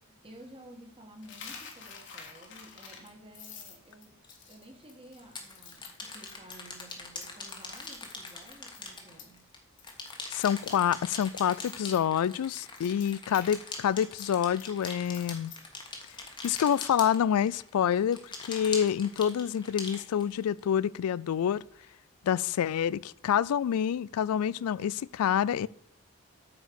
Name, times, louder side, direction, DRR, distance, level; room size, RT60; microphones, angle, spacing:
voice 1, 0.2-4.2 4.5-9.5, right 1 dB, 25° right, 1.7 m, -52 dB
Coin (dropping), 1.2-9.5 9.8-10.1 10.4-13.5 13.8-16.9, left 6 dB, 55° left, 1.7 m, -49 dB
sound 1, 4.2-4.3 5.2-9.6 9.8-17.7 18.1-20.6, left 3 dB, 20° left, 1.3 m, -42 dB
voice 2, 10.3-15.5 16.4-21.6 22.2-25.7, left 9 dB, 80° left, 0.3 m, -27 dB
8.5 x 4.7 x 6.8 m
head